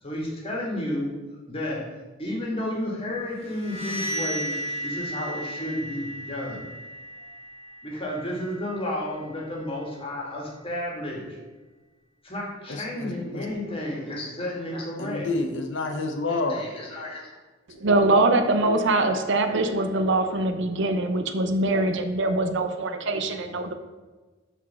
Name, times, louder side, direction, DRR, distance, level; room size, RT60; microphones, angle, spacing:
voice 1, 0.0-1.1 1.5-1.9 2.2-4.5 4.8-6.7 7.8-11.4 12.2-15.3 16.3-17.3 23.2-23.7, left 1 dB, 30° left, -2 dB, 1.9 m, -32 dB
sound 1, 3.4-9.0, equal, 35° right, 1.9 m, -35 dB
voice 2, 12.7-13.5 15.0-16.7, left 3 dB, 65° left, 4 dB, 0.8 m, -29 dB
voice 3, 17.7-23.7, right 2 dB, 65° right, 8 dB, 0.7 m, -23 dB
6.2 x 4.5 x 6.2 m, 1.3 s
head